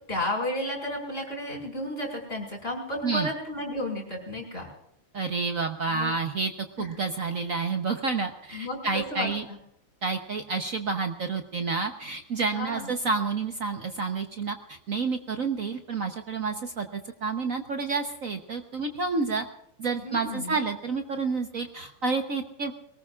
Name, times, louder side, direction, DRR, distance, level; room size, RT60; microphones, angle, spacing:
voice 1, 0.1-4.7 5.9-6.1 6.8-6.9 8.5-9.6 12.5-13.0 20.0-20.6, left 1 dB, 25° left, -1 dB, 5.7 m, -33 dB
voice 2, 5.1-6.5 6.8-9.4 10.0-19.4 19.8-22.7, right 4 dB, 50° right, 6 dB, 1.1 m, -29 dB
23.0 x 19.0 x 2.4 m, 0.78 s
omnidirectional pair, 2.3 m